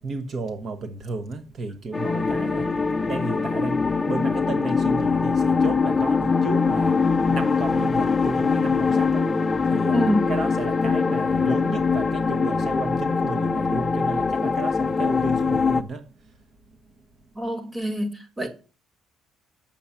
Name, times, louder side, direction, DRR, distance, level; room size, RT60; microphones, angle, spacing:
voice 1, 0.0-16.4, right 3 dB, 40° right, 1.3 m, -33 dB
sound 1, 1.9-15.8, left 4 dB, 20° left, 0.5 m, -22 dB
voice 2, 9.9-10.4 17.4-18.5, equal, 10° right, 1.9 m, -26 dB
8.8 x 7.4 x 7.1 m
cardioid pair, 150°, 0 cm